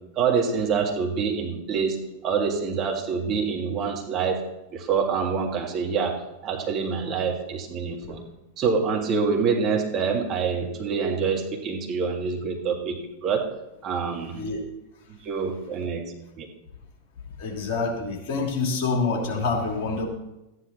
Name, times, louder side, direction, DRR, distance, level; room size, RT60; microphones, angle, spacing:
voice 1, 0.2-4.4 4.7-8.2 8.6-13.5 13.8-14.3 15.1-16.5, right 5 dB, 30° right, 2 dB, 2.0 m, -26 dB
voice 2, 14.3-14.6 17.4-20.1, left 4 dB, 45° left, 0 dB, 2.8 m, -27 dB
14.0 x 10.0 x 4.3 m, 0.94 s
figure-of-eight pair, 90°, 0 cm